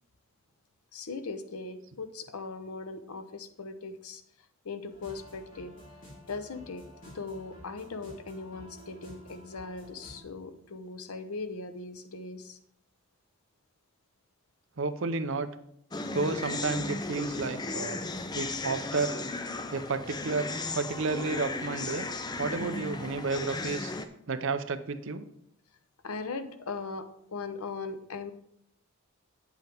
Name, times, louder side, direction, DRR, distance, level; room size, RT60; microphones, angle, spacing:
voice 1, 0.9-4.2 4.6-5.7 6.3-12.6 26.0-28.3, left 4 dB, 85° left, 9 dB, 0.8 m, -39 dB
sound 1, 4.9-10.2, equal, 40° left, 3.4 m, -51 dB
voice 2, 14.8-15.5 16.1-18.0 18.3-19.1 19.7-20.5 20.7-22.1 22.4-23.9 24.3-25.2, right 4 dB, 60° right, 10 dB, 0.7 m, -31 dB
sound 2, 15.9-24.1, left 3 dB, 20° left, 0.4 m, -35 dB
9.1 x 8.1 x 3.5 m, 0.71 s
head